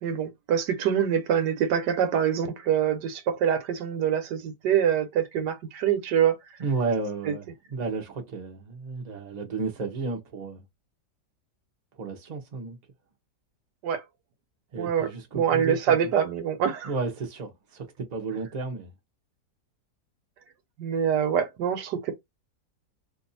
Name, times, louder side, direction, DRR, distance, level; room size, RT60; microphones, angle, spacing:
voice 1, 0.0-6.4 7.3-7.4 13.8-14.0 14.8-15.1 15.3-16.9 20.8-22.1, right 8 dB, 90° right, 1.4 m, -25 dB
voice 2, 6.6-10.6 12.0-12.8 14.7-16.1 16.8-18.9, right 4 dB, 30° right, 0.9 m, -32 dB
2.9 x 2.6 x 4.0 m
omnidirectional pair, 1.8 m